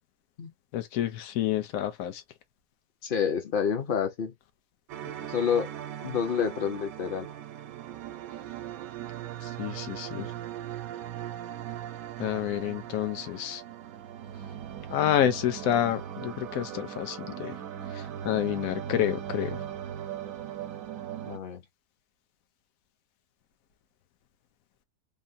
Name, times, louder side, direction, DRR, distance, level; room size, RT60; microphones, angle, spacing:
voice 1, 0.7-2.2 5.0-5.1 9.4-10.3 12.2-13.6 14.9-17.6 17.9-19.6, left 11 dB, 80° left, 1.1 m, -29 dB
voice 2, 3.0-4.3 5.3-5.7 6.0-7.3 21.2-21.6, left 7 dB, 50° left, 0.8 m, -28 dB
sound 1, 4.9-21.4, right 10 dB, 85° right, 1.0 m, -39 dB
3.6 x 2.0 x 2.5 m
omnidirectional pair, 1.5 m